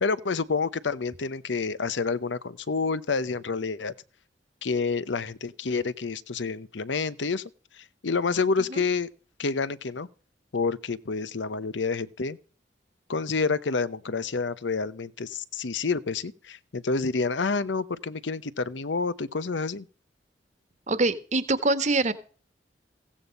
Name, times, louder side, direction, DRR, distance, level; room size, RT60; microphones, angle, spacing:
voice 1, 0.0-3.9 4.6-7.4 7.7-9.1 9.4-10.1 10.5-12.4 13.1-19.9, left 4 dB, 80° left, 0.8 m, -28 dB
voice 2, 20.9-22.1, right 2 dB, 40° right, 1.4 m, -24 dB
16.0 x 8.6 x 5.3 m
head